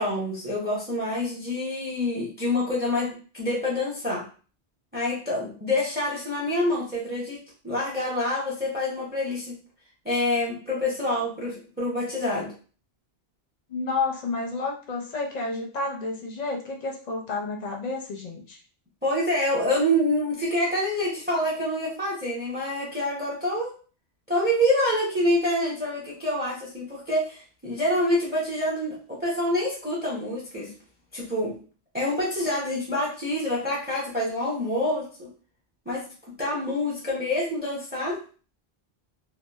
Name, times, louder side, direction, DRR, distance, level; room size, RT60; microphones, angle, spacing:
voice 1, 0.0-4.2 4.9-7.4 7.6-9.5 10.0-12.5 19.0-23.7 24.3-30.7 31.1-31.6 31.9-35.3 35.9-36.0 36.4-38.2, left 1 dB, 10° right, -4 dB, 0.6 m, -26 dB
voice 2, 13.7-18.6, left 3 dB, 50° left, 1 dB, 0.5 m, -30 dB
2.8 x 2.3 x 2.3 m, 0.39 s
omnidirectional pair, 1.1 m